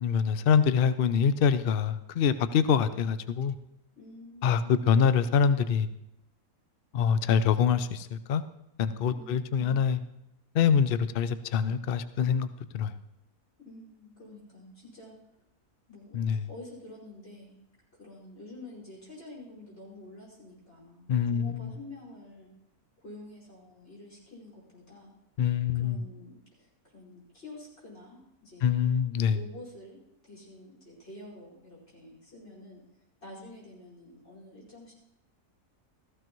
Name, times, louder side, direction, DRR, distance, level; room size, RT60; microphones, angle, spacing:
voice 1, 0.0-3.6 4.4-5.9 6.9-8.4 8.8-10.0 10.5-12.5 12.7-12.9 16.1-16.4 21.1-21.7 25.4-26.0 28.6-29.4, left 7 dB, 85° left, 12 dB, 0.5 m, -25 dB
voice 2, 4.0-5.1 9.1-9.9 13.6-15.1 15.9-17.6 18.0-22.5 23.0-25.1 25.7-28.9 29.3-30.0 30.2-32.8 33.2-34.9, left 2 dB, 45° left, -6 dB, 5.4 m, -48 dB
15.0 x 14.5 x 3.0 m, 0.83 s
omnidirectional pair, 1.6 m